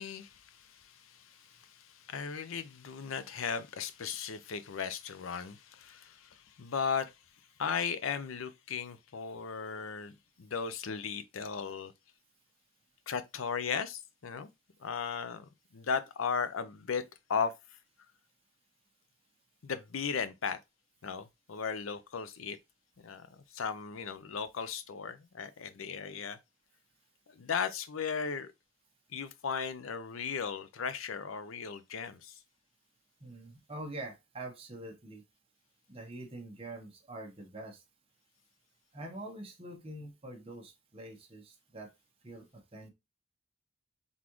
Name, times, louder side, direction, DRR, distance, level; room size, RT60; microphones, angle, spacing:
voice 1, 0.0-7.1 7.6-11.9 13.1-14.5 14.8-17.0 17.3-17.5 19.6-20.6 21.0-22.6 23.0-26.4 27.3-28.5 29.1-32.4, left 6 dB, 90° left, 0.6 m, -36 dB
voice 2, 33.2-35.2 35.9-37.8 38.9-41.9 42.2-42.9, right 1 dB, 30° right, 1.0 m, -45 dB
4.0 x 3.6 x 3.0 m
head